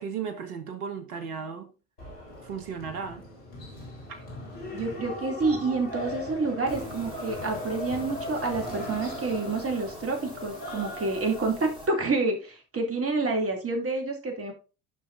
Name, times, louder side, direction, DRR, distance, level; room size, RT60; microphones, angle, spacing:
voice 1, 0.0-1.7 2.4-3.3, right 6 dB, 70° right, 1.2 m, -35 dB
sound 1, 2.0-11.5, left 1 dB, 80° left, 3.0 m, -38 dB
voice 2, 4.7-14.5, right 3 dB, 30° right, 2.7 m, -28 dB
sound 2, 6.7-11.9, left 2 dB, 10° right, 4.2 m, -44 dB
11.0 x 5.7 x 2.6 m
figure-of-eight pair, 60°, 47 cm